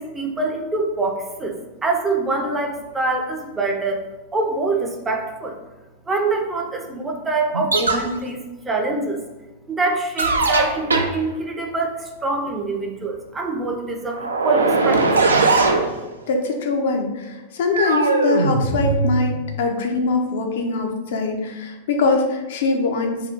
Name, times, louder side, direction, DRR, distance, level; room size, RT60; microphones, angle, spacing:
voice 1, 0.0-1.5 1.8-4.0 4.3-5.6 6.1-9.2 9.7-15.1, right 3 dB, 15° right, 2 dB, 0.5 m, -25 dB
sound 1, 7.5-8.1 10.2-11.2 14.1-15.9 17.7-19.5, right 3 dB, 80° right, 0.3 m, -19 dB
voice 2, 16.3-23.2, left 3 dB, 60° left, 3 dB, 0.4 m, -22 dB
2.6 x 2.3 x 3.5 m, 1.1 s
figure-of-eight pair, 95°, 0 cm